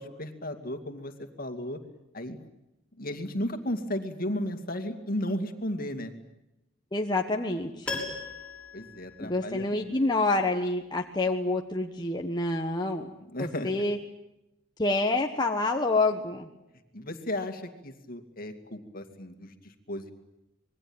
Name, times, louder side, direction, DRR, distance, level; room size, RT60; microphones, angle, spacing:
voice 1, 0.0-1.8 2.1-2.4 3.0-6.1 8.7-9.8 13.3-13.7 16.9-20.1, left 1 dB, 45° left, 7 dB, 2.4 m, -34 dB
voice 2, 6.9-8.0 9.2-13.1 13.4-14.0 14.8-16.5, left 2 dB, 20° left, 2 dB, 1.4 m, -27 dB
Piano, 7.8-9.9 10.2-10.3, left 3 dB, 5° left, 6.4 m, -38 dB
26.5 x 21.5 x 8.9 m, 0.91 s
head